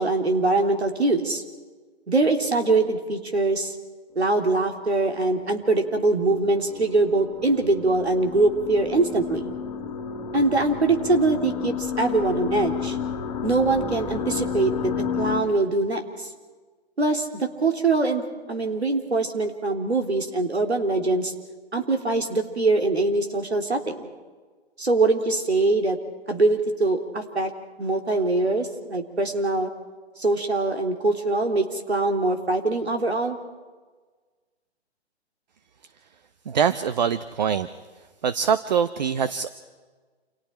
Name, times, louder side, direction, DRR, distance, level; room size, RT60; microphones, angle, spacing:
voice 1, 0.0-1.4 2.1-3.7 4.1-9.5 10.3-13.0 13.4-14.9 15.2-16.0 17.0-18.2 18.5-21.3 21.7-24.1 24.8-26.0 26.3-27.5 27.8-29.7 30.2-33.4, right 2 dB, 70° right, 4 dB, 3.2 m, -23 dB
sound 1, 5.1-15.4, left 6 dB, 35° left, 2.5 m, -32 dB
voice 2, 36.5-37.7 38.2-39.5, right 7 dB, 40° right, 12 dB, 0.8 m, -23 dB
29.0 x 28.0 x 4.4 m, 1.4 s
figure-of-eight pair, 130°, 33 cm